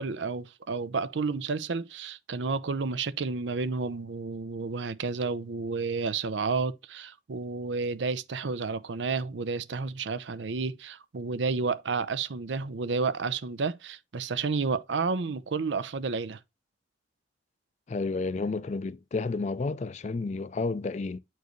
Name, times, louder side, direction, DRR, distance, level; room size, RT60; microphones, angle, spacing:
voice 1, 0.0-16.4, right 4 dB, 90° right, 0.6 m, -31 dB
voice 2, 17.9-21.2, left 3 dB, 40° left, 0.4 m, -31 dB
8.1 x 4.6 x 3.0 m
head